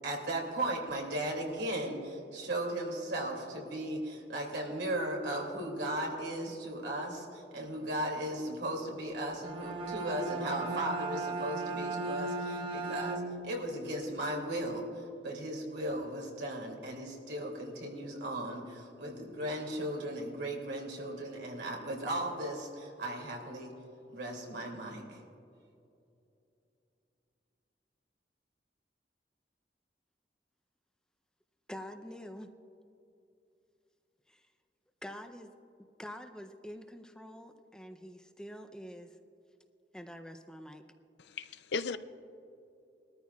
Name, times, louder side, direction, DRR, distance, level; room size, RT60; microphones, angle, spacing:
voice 1, 0.0-23.7 24.1-25.2, right 1 dB, 80° right, 0 dB, 2.6 m, -36 dB
Bowed string instrument, 9.3-13.6, right 3 dB, 30° right, 0.9 m, -36 dB
voice 2, 31.7-32.5 34.3-34.5 35.0-35.5 36.0-39.2 39.9-40.8, equal, 5° left, 6 dB, 0.5 m, -46 dB
voice 3, 41.2-42.0, left 4 dB, 75° left, 12 dB, 0.5 m, -36 dB
21.0 x 13.5 x 2.3 m, 2.7 s
head